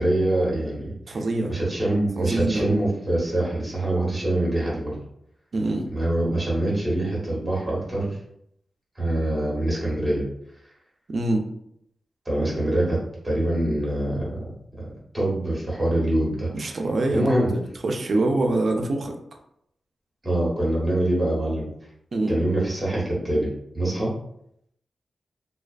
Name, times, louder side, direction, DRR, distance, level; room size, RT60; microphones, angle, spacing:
voice 1, 0.0-1.2 1.5-5.0 5.9-8.2 9.0-10.2 12.2-13.0 13.2-14.4 15.1-16.8 17.1-17.5 20.2-21.7 22.3-23.5 23.7-24.1, right 1 dB, 10° right, -6 dB, 1.0 m, -24 dB
voice 2, 1.1-1.6 2.2-2.7 5.5-5.9 11.1-11.5 16.5-17.2 17.5-19.1 22.1-22.3, right 2 dB, 45° right, 3 dB, 0.3 m, -25 dB
2.3 x 2.2 x 2.4 m, 0.73 s
wide cardioid pair, 150°, 0 cm